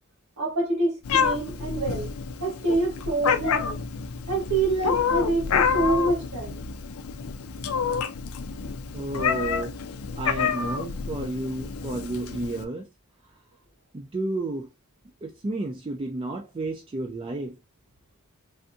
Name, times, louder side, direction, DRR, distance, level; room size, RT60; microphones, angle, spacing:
voice 1, 0.4-2.1 2.4-3.8 4.3-6.6, right 2 dB, 80° right, 1.4 m, -26 dB
Meow, 1.1-12.6, left 6 dB, 65° left, 0.4 m, -28 dB
voice 2, 8.9-9.8 10.2-12.9 13.9-14.7 15.2-17.5, right 2 dB, 25° right, 0.4 m, -31 dB
3.4 x 2.6 x 2.5 m
head